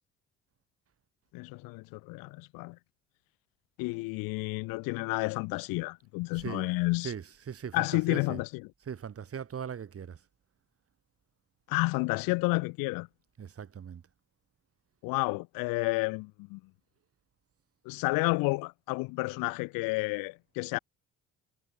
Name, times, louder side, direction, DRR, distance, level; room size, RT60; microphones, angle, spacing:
voice 1, 1.3-2.8 3.8-7.1 7.7-8.7 11.7-13.1 15.0-16.6 17.9-20.8, left 26 dB, 80° left, 0.6 m, -31 dB
voice 2, 6.3-6.7 7.0-8.4 8.9-10.2 13.4-14.0, right 7 dB, 40° right, 1.5 m, -39 dB
hypercardioid pair, 55°, 34 cm